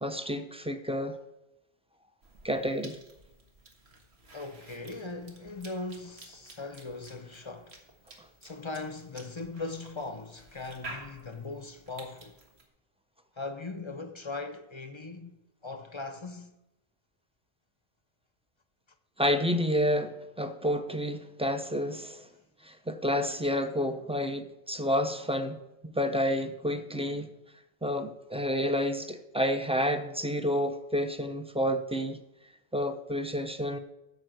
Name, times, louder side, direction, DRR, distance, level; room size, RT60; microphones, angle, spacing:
voice 1, 0.0-1.2 2.4-3.0 19.2-22.3 22.6-25.6 25.8-27.3 27.8-32.2 32.7-33.8, equal, 5° right, 0.6 m, -29 dB
Cough / Chewing mastication, 2.2-12.7, right 2 dB, 75° right, 1.9 m, -51 dB
voice 2, 4.3-7.8 8.4-12.3 13.4-16.5, left 3 dB, 30° left, 0.7 m, -39 dB
13.0 x 4.8 x 7.8 m
omnidirectional pair, 1.1 m